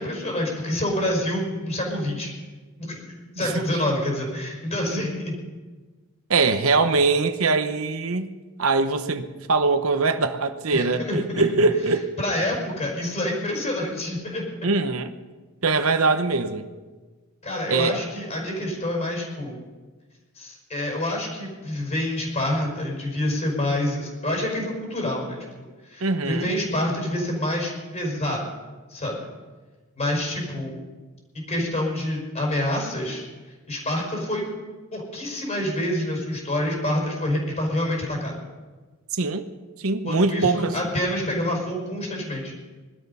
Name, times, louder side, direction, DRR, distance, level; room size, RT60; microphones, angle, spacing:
voice 1, 0.0-2.3 2.8-3.0 3.4-5.3 10.7-11.5 12.2-14.4 17.4-19.6 20.4-25.4 25.8-28.4 28.9-29.2 30.0-30.8 31.3-33.3 33.7-34.4 34.9-38.4 40.0-42.5, left 1 dB, 30° left, 5.1 m, -27 dB
voice 2, 6.3-8.3 8.6-12.1 14.6-15.1 15.6-16.7 17.7-18.0 26.0-26.5 39.2-39.4 39.8-40.7, right 3 dB, 75° right, 1.0 m, -22 dB
20.5 x 12.5 x 5.5 m
head